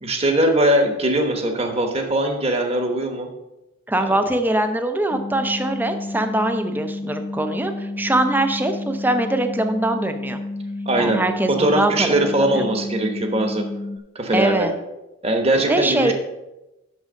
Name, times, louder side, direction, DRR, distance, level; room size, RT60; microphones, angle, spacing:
voice 1, 0.0-3.3 10.9-11.2 11.5-13.7 14.1-14.7 15.2-16.1, right 1 dB, 30° right, 4 dB, 1.1 m, -20 dB
voice 2, 3.9-10.4 10.9-12.6 14.3-14.7 15.7-16.1, right 1 dB, 10° right, 7 dB, 0.5 m, -22 dB
sound 1, 5.1-14.0, left 2 dB, 45° left, 0.6 m, -31 dB
6.4 x 6.2 x 6.3 m, 0.98 s
head